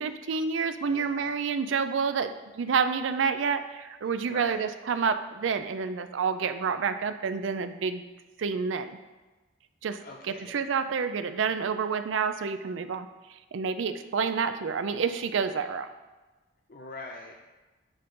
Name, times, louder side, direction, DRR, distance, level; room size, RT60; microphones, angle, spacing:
voice 1, 0.0-8.0 8.4-9.0 9.8-10.0 10.3-13.1 13.5-15.9, right 5 dB, 75° right, 10 dB, 0.4 m, -29 dB
voice 2, 0.9-1.3 4.0-4.7 10.0-10.5 16.7-17.4, left 2 dB, 45° left, 2 dB, 0.5 m, -44 dB
10.0 x 3.7 x 3.9 m, 1.2 s
head